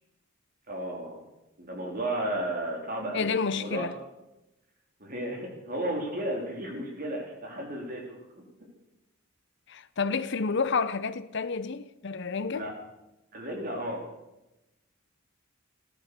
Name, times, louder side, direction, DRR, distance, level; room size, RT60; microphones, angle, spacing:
voice 1, 0.7-1.2 1.6-3.3 3.5-3.9 5.0-8.4 12.5-12.7 13.3-14.0, right 1 dB, 40° right, 3.7 m, -33 dB
voice 2, 3.1-3.9 9.7-12.7, left 5 dB, 55° left, 0.7 m, -30 dB
15.0 x 14.0 x 6.8 m
head